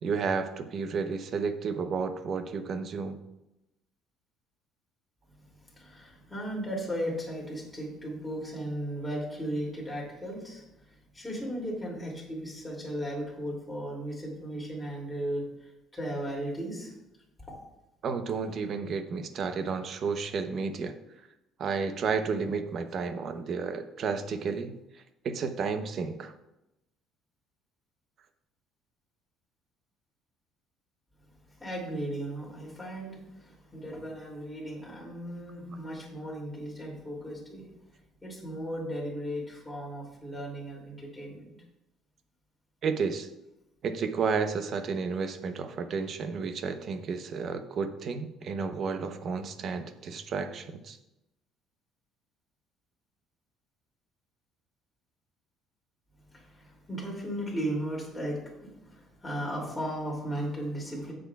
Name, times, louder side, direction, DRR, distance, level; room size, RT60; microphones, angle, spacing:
voice 1, 0.0-3.2 18.0-20.9 21.6-24.7 25.2-26.3 42.8-43.3 43.8-51.0, right 5 dB, 45° right, 8 dB, 0.8 m, -32 dB
voice 2, 5.8-10.6 11.1-15.4 15.9-16.9 31.6-33.2 33.4-37.6 38.2-41.4 56.6-61.1, equal, 5° left, -4 dB, 2.6 m, -36 dB
15.5 x 6.2 x 2.4 m, 0.89 s
cardioid pair, 145°, 0 cm